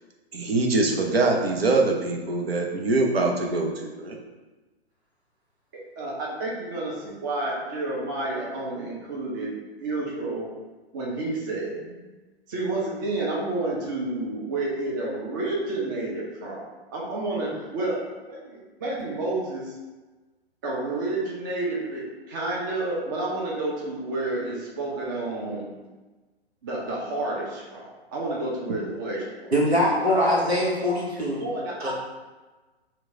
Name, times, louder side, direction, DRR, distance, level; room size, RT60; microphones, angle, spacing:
voice 1, 0.3-4.2, right 3 dB, 70° right, 1 dB, 0.7 m, -23 dB
voice 2, 6.0-9.5 9.8-10.5 10.9-12.1 12.5-16.6 16.9-19.7 20.6-25.7 26.6-29.6 29.9-30.5 31.4-31.9, right 2 dB, 20° right, -3 dB, 0.4 m, -30 dB
voice 3, 29.5-31.4 31.8-31.9, left 1 dB, 90° right, -4 dB, 1.0 m, -22 dB
2.9 x 2.2 x 3.7 m, 1.2 s
figure-of-eight pair, 120°, 31 cm